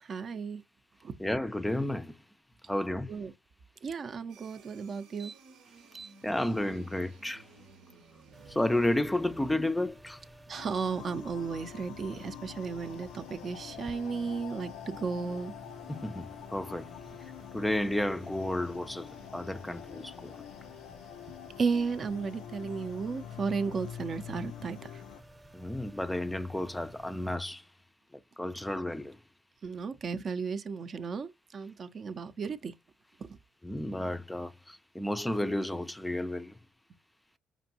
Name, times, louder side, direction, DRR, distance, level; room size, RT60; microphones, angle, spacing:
voice 1, 0.0-0.6 1.0-1.2 3.1-3.3 3.8-5.4 5.9-6.1 10.5-15.5 21.6-25.0 29.6-32.7 33.2-33.4, right 5 dB, 50° right, 0.5 m, -34 dB
voice 2, 1.2-2.2 2.7-3.1 6.2-7.5 8.5-10.2 15.9-16.9 17.2-20.4 25.5-27.7 28.4-29.2 33.6-36.6, left 1 dB, 10° left, 0.4 m, -32 dB
sound 1, 4.3-9.5, right 5 dB, 80° right, 0.8 m, -56 dB
sound 2, 8.3-27.4, right 1 dB, 20° right, 0.8 m, -53 dB
sound 3, 10.6-25.2, left 11 dB, 85° left, 0.3 m, -46 dB
5.0 x 2.6 x 2.7 m
supercardioid pair, 70°, 0 cm